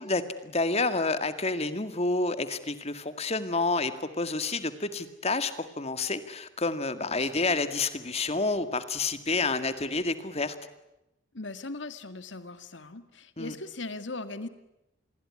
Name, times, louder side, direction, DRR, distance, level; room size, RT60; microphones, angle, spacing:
voice 1, 0.0-10.5 13.4-13.5, left 3 dB, 35° left, 11 dB, 2.0 m, -29 dB
voice 2, 7.1-7.5 11.3-14.5, left 3 dB, 70° left, 11 dB, 2.1 m, -39 dB
28.0 x 21.0 x 9.8 m, 0.90 s
head